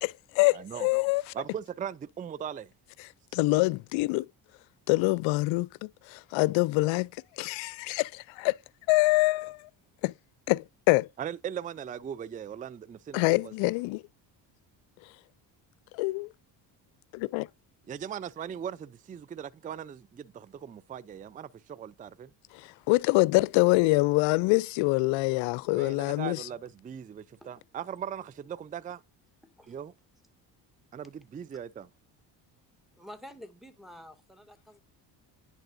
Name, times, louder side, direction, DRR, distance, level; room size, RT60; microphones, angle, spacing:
voice 1, 0.0-1.2 3.3-4.3 4.9-7.1 7.4-8.6 8.9-9.7 10.0-10.1 10.5-11.1 13.1-14.0 15.9-16.3 17.1-17.5 22.9-26.4, left 22 dB, 70° left, 0.5 m, -25 dB
voice 2, 0.5-2.7 11.2-13.5 17.9-22.3 25.7-29.0 29.7-29.9 30.9-31.9, right 8 dB, 20° right, 0.4 m, -39 dB
voice 3, 33.0-34.8, equal, ahead, 2.1 m, -48 dB
10.5 x 4.4 x 2.6 m
hypercardioid pair, 65°, 49 cm